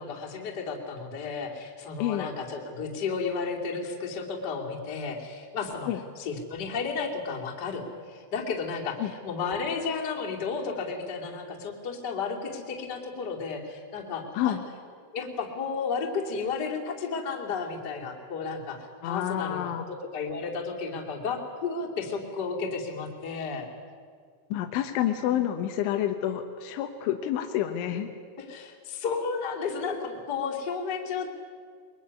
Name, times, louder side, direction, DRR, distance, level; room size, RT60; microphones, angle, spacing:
voice 1, 0.0-5.9 6.2-14.6 15.1-19.7 20.1-23.7 28.4-31.3, left 5 dB, 25° left, -1 dB, 2.5 m, -33 dB
voice 2, 19.0-19.9 24.5-28.1, left 11 dB, 75° left, 5 dB, 3.5 m, -28 dB
23.0 x 22.5 x 9.7 m, 2.1 s
omnidirectional pair, 5.7 m